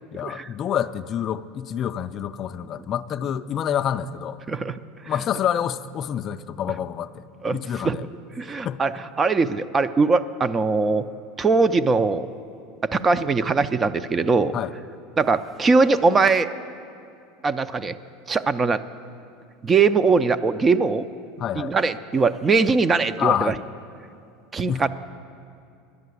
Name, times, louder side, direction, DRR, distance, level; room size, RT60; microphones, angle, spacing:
voice 1, 0.1-4.4 5.1-7.2 7.5-8.0 8.6-8.8 14.5-14.7 21.4-21.7 23.2-23.6 24.7-24.9, left 9 dB, 40° left, 12 dB, 0.4 m, -27 dB
voice 2, 4.5-4.8 7.4-8.0 8.4-8.9 9.2-11.1 11.4-12.3 12.8-14.5 15.2-16.5 17.4-18.0 18.3-18.8 19.6-21.0 21.6-23.5 24.5-24.9, right 4 dB, 25° right, 13 dB, 0.4 m, -21 dB
10.5 x 7.5 x 9.5 m, 2.4 s
supercardioid pair, 110°, 0 cm